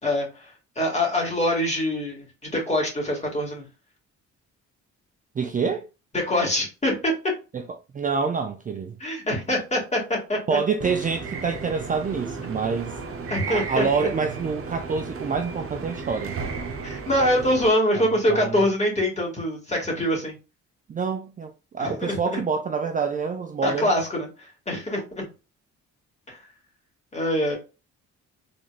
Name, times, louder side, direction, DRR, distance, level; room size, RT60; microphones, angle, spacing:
voice 1, 0.0-3.7 6.1-7.1 9.0-10.6 13.3-14.1 16.8-20.4 21.8-22.4 23.6-25.3 26.3-26.4 27.1-27.6, left 1 dB, 20° left, 2.1 m, -24 dB
voice 2, 5.4-5.8 7.5-7.6 7.9-9.0 10.5-13.0 13.5-16.4 18.0-18.6 20.9-23.9, right 5 dB, 25° right, 0.4 m, -27 dB
sound 1, 10.8-17.7, right 4 dB, 45° right, 0.8 m, -34 dB
3.8 x 3.4 x 2.4 m
cardioid pair, 90°, 30 cm